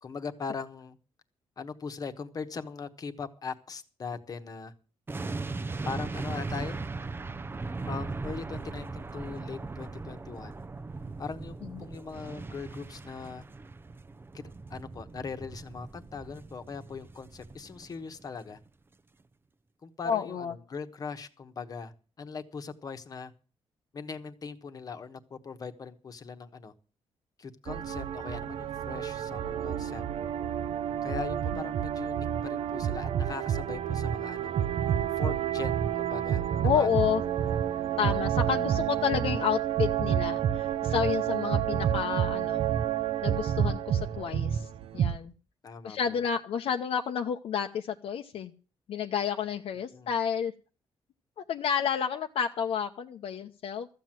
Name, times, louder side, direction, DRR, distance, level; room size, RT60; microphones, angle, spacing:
voice 1, 0.0-1.0 1.6-4.7 5.8-6.8 7.9-10.5 11.2-13.4 14.3-14.4 14.7-18.6 19.8-23.3 23.9-26.7 27.4-30.0 31.0-34.5 35.2-37.1 41.9-42.1 45.6-46.2 49.9-50.1, left 5 dB, 40° left, 8 dB, 1.1 m, -40 dB
sound 1, 5.1-18.2 18.5-18.7, right 3 dB, 20° right, 0.5 m, -39 dB
voice 2, 20.0-20.5 36.6-37.2 38.0-42.6 43.2-45.3 45.8-48.5 48.9-50.5 51.5-53.9, left 7 dB, 75° left, 3 dB, 0.8 m, -30 dB
sound 2, 27.7-45.2, right 10 dB, 70° right, 0.6 m, -29 dB
14.0 x 7.6 x 7.6 m, 0.37 s
wide cardioid pair, 145°, 10 cm